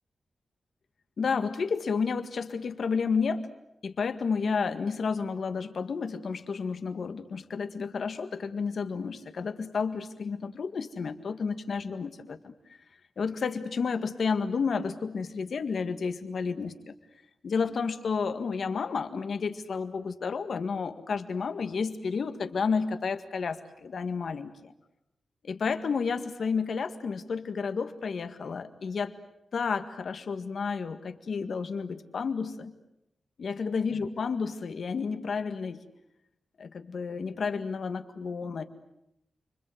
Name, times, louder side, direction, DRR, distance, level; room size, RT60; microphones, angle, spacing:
voice 1, 1.2-3.5 3.8-12.8 13.2-16.9 17.4-24.7 25.4-29.1 29.5-32.7 33.4-35.8 36.6-38.6, left 5 dB, 55° left, 9 dB, 1.9 m, -31 dB
30.0 x 25.0 x 8.1 m, 0.82 s
wide cardioid pair, 165°, 0 cm